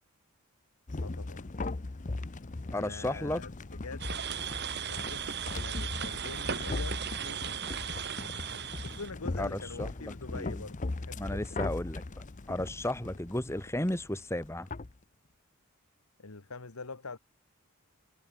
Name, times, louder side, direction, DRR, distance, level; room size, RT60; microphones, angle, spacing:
sound 1, 0.9-14.9, left 2 dB, 35° left, 0.7 m, -39 dB
voice 1, 1.0-1.5 2.7-4.2 4.9-7.6 8.8-11.4 16.2-17.2, left 3 dB, 85° left, 1.6 m, -45 dB
voice 2, 2.7-3.4 9.4-10.6 11.2-12.0 12.5-14.7, left 1 dB, 10° left, 1.7 m, -34 dB
sound 2, 4.0-9.1, right 8 dB, 50° right, 1.3 m, -37 dB
head